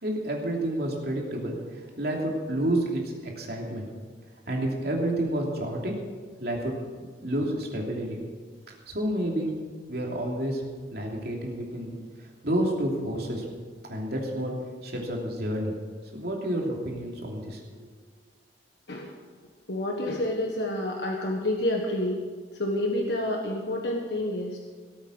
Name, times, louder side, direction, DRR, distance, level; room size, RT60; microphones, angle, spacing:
voice 1, 0.0-3.9 4.5-5.9 6.4-6.7 7.2-8.2 8.9-9.5 9.9-10.6 10.9-13.5 13.8-15.7 16.1-17.9, right 1 dB, 55° right, -1 dB, 2.9 m, -30 dB
voice 2, 19.7-22.2 22.5-24.7, left 1 dB, 65° left, 0 dB, 1.5 m, -29 dB
18.0 x 8.4 x 6.3 m, 1.5 s
head